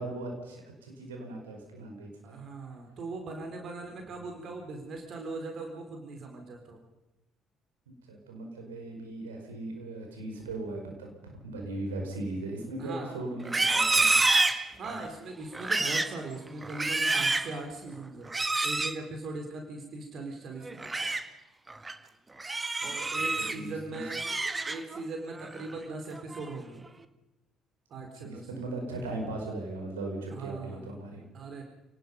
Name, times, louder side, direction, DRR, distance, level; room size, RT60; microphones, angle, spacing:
voice 1, 0.0-2.4 3.9-4.0 8.1-14.2 23.0-23.3 23.5-24.0 28.0-31.2, right 2 dB, 75° right, 2 dB, 5.3 m, -38 dB
voice 2, 2.2-6.8 12.8-13.2 14.8-18.3 18.6-21.1 22.8-24.3 24.7-26.8 27.9-28.5 30.3-30.9 31.3-31.6, right 3 dB, 50° right, 3 dB, 4.2 m, -40 dB
Livestock farm animals working animals, 13.4-15.1 15.5-16.2 16.6-17.5 18.3-19.0 20.6-21.2 21.7-21.9 22.4-23.6 23.9-25.0 25.4-25.7 26.1-26.6, right 3 dB, 20° right, 1.8 m, -28 dB
29.5 x 19.0 x 5.5 m, 0.96 s
figure-of-eight pair, 50°, 0 cm